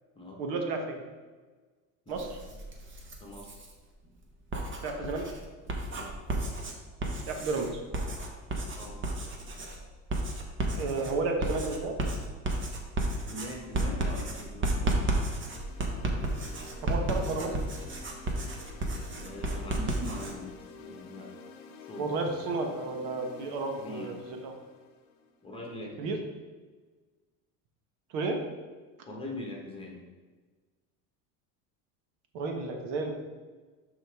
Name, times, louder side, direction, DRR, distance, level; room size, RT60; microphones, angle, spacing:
voice 1, 0.4-1.0 2.1-2.4 4.8-5.3 7.3-7.8 10.8-12.0 16.8-17.6 22.0-24.5 26.0-26.2 28.1-28.4 32.3-33.1, right 3 dB, 70° right, 3 dB, 1.2 m, -32 dB
Writing, 2.1-3.7 4.3-20.3, right 2 dB, 30° right, 1.1 m, -33 dB
voice 2, 3.2-3.6 5.9-6.2 8.8-9.0 13.3-15.2 19.2-21.3 21.8-22.1 23.8-24.1 25.4-26.2 29.1-30.1, left 1 dB, 15° left, -1 dB, 1.3 m, -42 dB
sound 1, 15.5-25.6, left 5 dB, 55° left, 0.9 m, -49 dB
11.0 x 3.9 x 3.5 m, 1.4 s
supercardioid pair, 125°, 40 cm